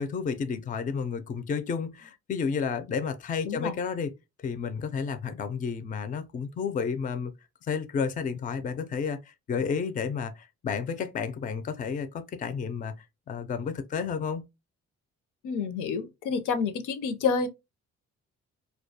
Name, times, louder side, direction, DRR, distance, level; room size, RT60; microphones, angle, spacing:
voice 1, 0.0-4.1 4.4-7.3 7.6-14.5, left 6 dB, 30° left, 0.3 m, -31 dB
voice 2, 15.4-17.5, left 5 dB, 80° left, 0.5 m, -28 dB
2.3 x 2.2 x 2.7 m
cardioid pair, 90°, 30 cm